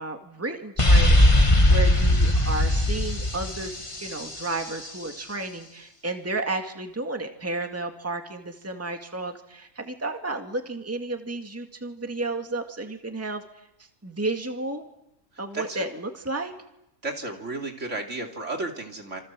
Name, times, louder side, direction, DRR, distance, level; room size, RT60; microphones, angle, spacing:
voice 1, 0.0-13.4 14.0-14.9 15.4-16.5, right 2 dB, 10° right, 5 dB, 2.0 m, -32 dB
sound 1, 0.8-4.5, left 1 dB, 25° left, 1.7 m, -19 dB
voice 2, 15.5-15.9 17.0-19.2, right 2 dB, 60° right, 3 dB, 3.2 m, -33 dB
28.5 x 27.0 x 7.5 m, 0.84 s
omnidirectional pair, 1.4 m